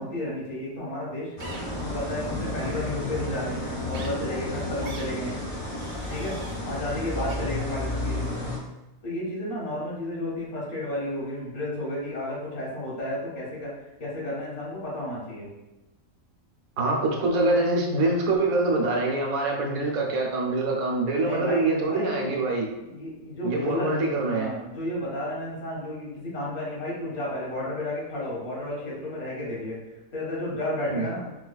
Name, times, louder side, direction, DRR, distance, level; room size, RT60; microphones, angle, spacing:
voice 1, 0.0-1.3 1.8-5.4 6.1-6.4 6.6-8.4 9.0-13.7 14.0-15.5 21.2-22.4 22.8-29.8 30.1-31.3, left 1 dB, 70° left, -5 dB, 1.5 m, -32 dB
sound 1, 1.4-8.6, left 1 dB, 40° left, 0.4 m, -32 dB
sound 2, 1.4-1.6 2.6-2.8 3.9-4.1 4.8-5.1 5.7-6.6 7.3-7.4, right 3 dB, 70° right, 0.9 m, -43 dB
voice 2, 16.8-22.7 23.4-24.5 30.9-31.1, right 2 dB, 90° right, 0 dB, 1.2 m, -25 dB
4.4 x 2.3 x 2.3 m, 1.0 s
omnidirectional pair, 1.5 m